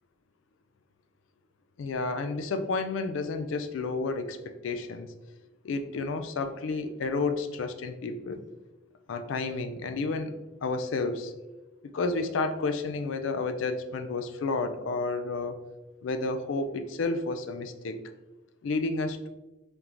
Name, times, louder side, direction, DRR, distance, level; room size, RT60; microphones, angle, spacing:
voice 1, 1.8-5.1 5.6-8.5 9.1-10.3 10.6-11.3 11.9-15.5 16.0-18.0 18.6-19.3, left 3 dB, 80° left, 9 dB, 0.4 m, -31 dB
3.8 x 3.5 x 3.0 m, 1.1 s
head